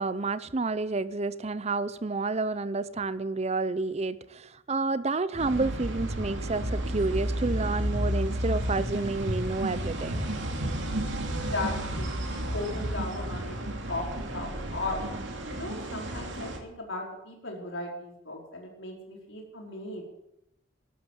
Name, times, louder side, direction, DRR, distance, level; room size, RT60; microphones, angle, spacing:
voice 1, 0.0-10.2, right 3 dB, 30° right, 0.6 m, -30 dB
sound 1, 5.4-16.6, right 1 dB, 60° right, 2.8 m, -32 dB
voice 2, 11.3-15.0 15.5-20.0, left 2 dB, 65° left, 4.8 m, -37 dB
13.5 x 12.0 x 8.3 m
head